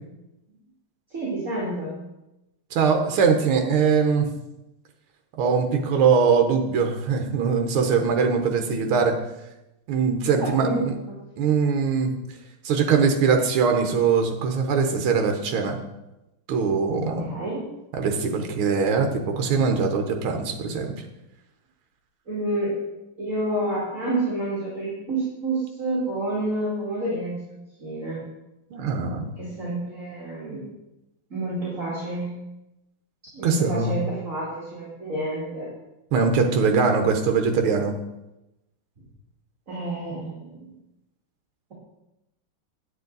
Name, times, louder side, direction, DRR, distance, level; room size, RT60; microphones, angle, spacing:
voice 1, 1.1-2.0 10.4-11.2 17.0-17.7 22.3-22.8 23.2-27.4 27.8-28.2 29.4-30.7 31.3-32.4 33.3-35.7 39.7-40.7, right 1 dB, 35° right, -7 dB, 2.8 m, -29 dB
voice 2, 2.7-4.3 5.4-9.2 9.9-10.9 11.4-12.1 12.6-15.8 16.5-17.3 18.0-21.1 28.7-29.4 33.4-34.0 36.1-37.9, right 5 dB, 80° right, 4 dB, 1.9 m, -22 dB
9.6 x 9.0 x 4.0 m, 0.93 s
omnidirectional pair, 2.3 m